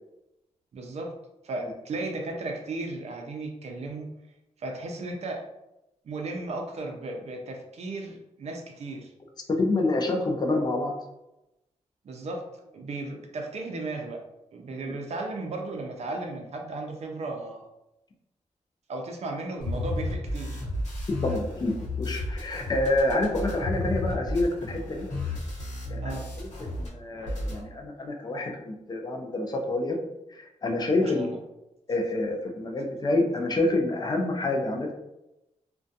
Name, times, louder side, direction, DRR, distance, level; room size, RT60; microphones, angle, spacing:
voice 1, 0.7-1.1 1.4-4.1 4.6-5.4 6.0-9.1 12.0-14.2 14.5-17.7 18.9-20.6 26.0-26.3 31.0-31.4, right 2 dB, 60° right, 2 dB, 0.4 m, -35 dB
voice 2, 9.6-10.9 14.8-14.9 21.2-25.1 25.9-26.5 26.8-30.0 30.3-31.3 31.9-34.9, left 2 dB, 35° left, 2 dB, 0.4 m, -27 dB
sound 1, 19.6-26.9 27.1-27.6, left 1 dB, 70° left, 1.0 m, -32 dB
2.4 x 2.2 x 2.6 m, 0.92 s
wide cardioid pair, 140°, 12 cm